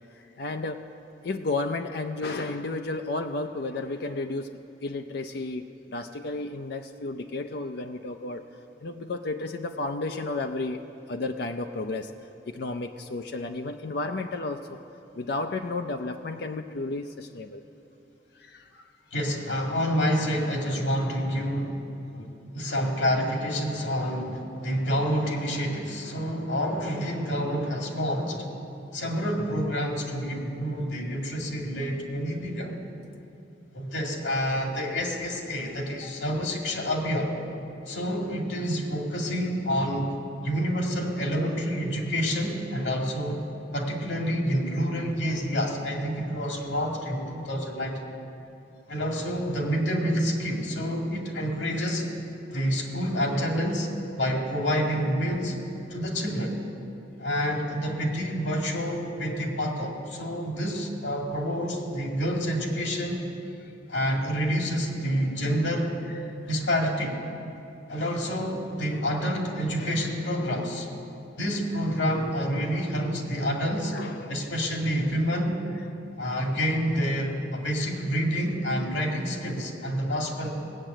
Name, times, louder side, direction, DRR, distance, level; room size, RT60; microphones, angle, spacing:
voice 1, 0.1-0.8 1.2-4.5 4.8-8.4 8.8-10.8 11.1-12.1 12.5-14.8 15.1-17.6 18.3-18.9 36.0-36.1 66.3-66.4 73.9-74.3, left 3 dB, 60° left, 5 dB, 0.5 m, -32 dB
voice 2, 19.1-22.3 22.5-28.4 28.9-32.7 33.7-37.3 37.9-40.1 40.4-43.4 43.7-48.0 48.9-52.1 52.5-53.9 54.2-55.6 55.9-56.6 57.2-63.2 63.9-65.9 66.5-67.2 67.9-70.9 71.4-73.9 74.3-75.6 76.2-80.5, equal, 85° left, 1 dB, 2.1 m, -28 dB
17.0 x 7.4 x 9.0 m, 2.8 s
head